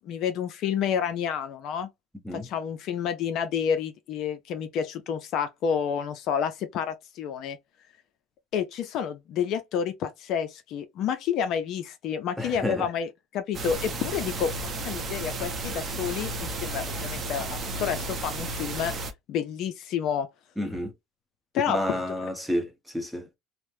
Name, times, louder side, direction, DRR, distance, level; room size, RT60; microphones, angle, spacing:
voice 1, 0.0-1.9 2.3-7.6 8.5-17.5 17.8-18.9 19.3-20.3 21.5-22.0, left 8 dB, 55° left, 0.5 m, -29 dB
voice 2, 12.4-12.9 20.6-20.9 21.7-23.3, left 1 dB, ahead, 0.8 m, -30 dB
sound 1, 13.5-19.1, right 2 dB, 35° right, 0.6 m, -33 dB
2.8 x 2.1 x 3.1 m
supercardioid pair, 120°, 0 cm